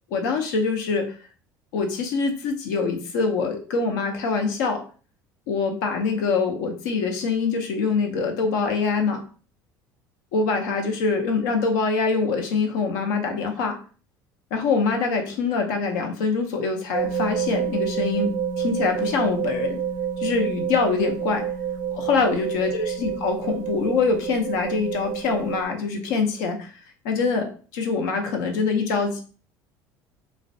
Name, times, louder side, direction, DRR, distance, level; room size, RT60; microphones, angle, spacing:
voice 1, 0.1-1.1 1.7-4.8 5.5-9.2 10.3-13.8 14.5-18.3 18.6-19.8 20.2-21.5 21.9-26.8 27.0-29.2, left 4 dB, 80° left, 4 dB, 0.5 m, -24 dB
sound 1, 16.9-25.6, right 8 dB, 90° right, 0.4 m, -28 dB
2.3 x 2.1 x 2.5 m, 0.39 s
hypercardioid pair, 75°, 10 cm